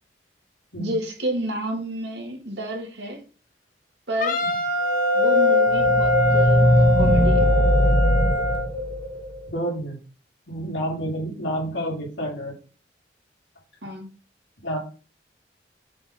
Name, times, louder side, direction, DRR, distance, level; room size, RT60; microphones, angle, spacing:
voice 1, 0.8-3.2 4.1-4.4 5.1-7.5 13.8-14.1, right 1 dB, 75° right, 3 dB, 1.8 m, -30 dB
Wind instrument woodwind instrument, 4.2-8.7, equal, 45° left, 0.9 m, -24 dB
sound 1, 4.8-9.4, left 1 dB, 30° left, 1.2 m, -19 dB
voice 2, 9.5-10.0 10.5-12.5 14.6-14.8, equal, 85° left, -2 dB, 3.2 m, -29 dB
6.8 x 3.9 x 4.1 m, 0.35 s
head